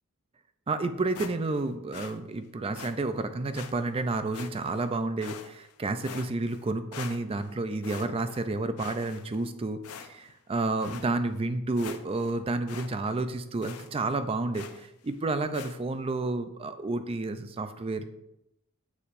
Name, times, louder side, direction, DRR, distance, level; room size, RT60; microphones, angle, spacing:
voice 1, 0.7-18.0, right 2 dB, 25° right, 10 dB, 0.4 m, -30 dB
sound 1, 1.1-1.6 1.9-2.2 2.7-2.9 3.5-3.7 4.3-4.8 5.2-5.7 6.0-6.6 6.9-7.5 7.8-8.4 8.8-9.5 9.8-10.3 10.8-11.1 11.5-11.6 11.8-12.3 12.7-12.9 13.2-13.3 13.6-13.9 14.5-14.9 15.5-15.7, left 6 dB, 85° left, 0.6 m, -43 dB
7.1 x 6.8 x 2.5 m, 0.87 s
head